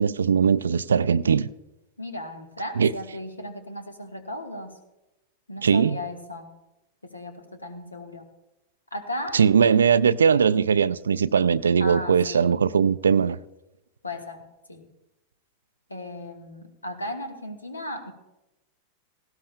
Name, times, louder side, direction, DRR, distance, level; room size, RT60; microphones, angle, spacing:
voice 1, 0.0-1.5 2.8-2.9 5.6-6.0 9.3-13.4, right 6 dB, 70° right, 0.3 m, -20 dB
voice 2, 2.0-4.8 5.5-6.5 7.0-8.3 8.9-9.4 11.8-12.5 14.0-14.9 15.9-18.1, left 1 dB, 80° left, 1.4 m, -36 dB
18.0 x 16.0 x 2.2 m
figure-of-eight pair, 90°, 0 cm